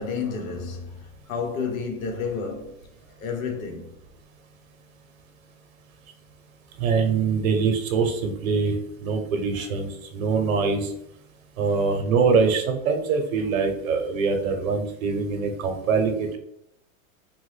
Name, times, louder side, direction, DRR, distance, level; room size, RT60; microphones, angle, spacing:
voice 1, 0.0-2.9 3.2-3.9 11.7-11.8, left 5 dB, 85° left, 0.9 m, -31 dB
voice 2, 6.8-10.9 11.6-16.4, right 5 dB, 85° right, 0.8 m, -23 dB
3.0 x 2.2 x 3.2 m
supercardioid pair, 165°, 41 cm